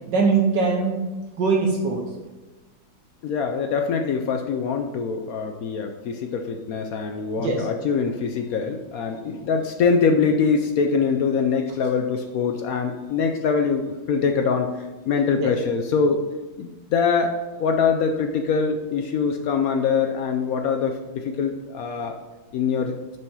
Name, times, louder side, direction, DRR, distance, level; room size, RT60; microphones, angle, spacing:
voice 1, 0.1-1.0 1.4-2.1 7.4-7.7 15.4-15.5, right 4 dB, 70° right, 1 dB, 1.5 m, -21 dB
voice 2, 3.2-16.2 16.6-22.2 22.5-22.9, left 5 dB, 70° left, 4 dB, 0.8 m, -23 dB
6.1 x 5.3 x 5.5 m, 1.2 s
omnidirectional pair, 2.1 m